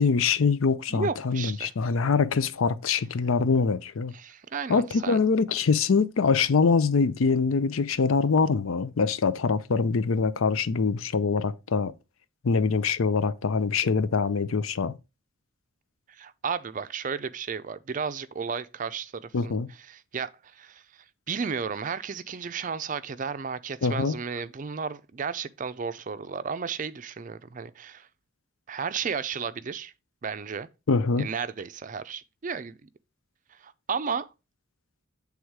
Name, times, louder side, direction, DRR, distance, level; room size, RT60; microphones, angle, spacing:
voice 1, 0.0-4.1 4.7-11.9 12.4-14.9 19.3-19.7 23.8-24.2 30.9-31.3, left 5 dB, 80° left, 0.5 m, -24 dB
voice 2, 0.9-1.7 4.1-5.2 16.1-19.5 19.9-28.1 28.7-29.9 30.2-30.7 31.2-32.9 33.5-34.3, right 6 dB, 40° right, 0.4 m, -33 dB
8.0 x 3.5 x 4.7 m
head